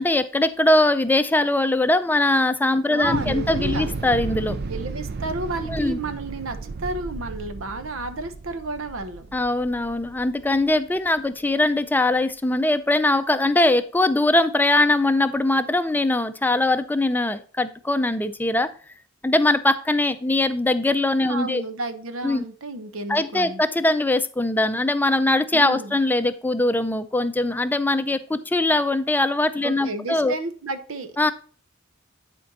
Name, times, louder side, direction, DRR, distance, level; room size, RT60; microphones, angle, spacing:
voice 1, 0.0-4.6 5.7-6.0 9.3-18.7 19.2-21.6 22.2-22.4 23.1-30.3 31.2-31.3, left 2 dB, 10° left, 11 dB, 0.5 m, -21 dB
voice 2, 2.9-3.9 4.7-9.3 21.2-23.6 25.5-26.0 29.6-31.2, right 2 dB, 85° right, 9 dB, 1.0 m, -32 dB
Thunder / Explosion, 3.0-11.2, right 4 dB, 55° right, 0.5 m, -33 dB
10.5 x 4.5 x 4.0 m, 0.41 s
head